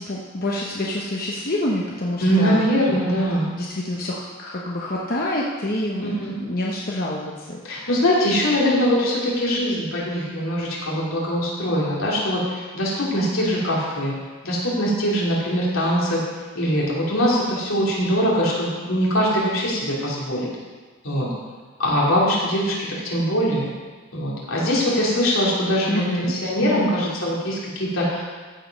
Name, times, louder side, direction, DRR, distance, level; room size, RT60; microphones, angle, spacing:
voice 1, 0.0-2.7 3.5-7.6 25.9-26.3 26.6-26.9, left 1 dB, 45° left, -3 dB, 0.9 m, -27 dB
voice 2, 2.2-3.5 6.0-6.3 7.6-14.1 14.4-16.2 16.5-20.5 21.0-21.3 21.8-22.7 23.0-23.7 24.1-28.2, equal, 75° left, -5 dB, 3.1 m, -22 dB
14.5 x 5.2 x 5.3 m, 1.4 s
head